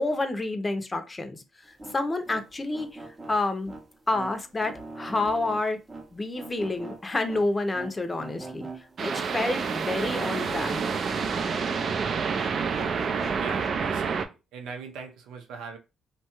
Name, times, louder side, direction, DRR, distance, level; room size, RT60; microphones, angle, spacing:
voice 1, 0.0-1.4 1.9-3.7 4.1-5.8 6.1-10.8, left 2 dB, 25° left, 0.6 m, -29 dB
sound 1, 1.6-12.0 12.3-13.7, right 2 dB, 20° right, 0.7 m, -42 dB
sound 2, 9.0-14.2, right 5 dB, 55° right, 0.3 m, -28 dB
voice 2, 13.4-15.8, right 5 dB, 85° right, 0.7 m, -40 dB
2.7 x 2.3 x 2.9 m
cardioid pair, 90°, 0 cm